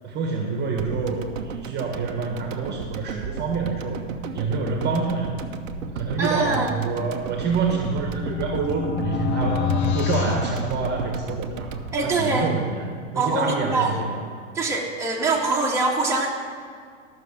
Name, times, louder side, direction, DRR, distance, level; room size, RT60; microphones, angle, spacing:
voice 1, 0.0-4.0 4.3-5.3 5.9-11.7 12.0-14.2, right 4 dB, 25° right, 2 dB, 1.6 m, -27 dB
sound 1, 0.8-13.1 13.4-13.5, right 6 dB, 80° right, 0.9 m, -35 dB
voice 2, 6.2-6.7 11.9-12.5 13.2-13.9 14.5-16.4, right 3 dB, 5° right, -4 dB, 1.8 m, -23 dB
sound 2, 7.6-11.5, left 7 dB, 40° left, 0.9 m, -28 dB
13.0 x 6.5 x 7.1 m, 2.1 s
hypercardioid pair, 115°, 38 cm